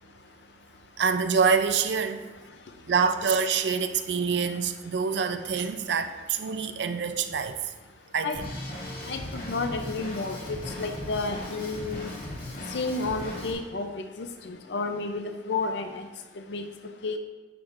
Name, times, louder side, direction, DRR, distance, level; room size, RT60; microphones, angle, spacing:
voice 1, 1.0-2.2 2.9-7.6 8.1-8.5, right 5 dB, 75° right, 8 dB, 0.5 m, -26 dB
Drum kit, 8.3-13.5, left 1 dB, 55° left, 2.3 m, -37 dB
voice 2, 9.1-12.1 12.7-16.1 16.5-16.7 17.0-17.2, left 3 dB, 70° left, 7 dB, 0.6 m, -31 dB
9.3 x 6.2 x 2.6 m, 1.2 s
head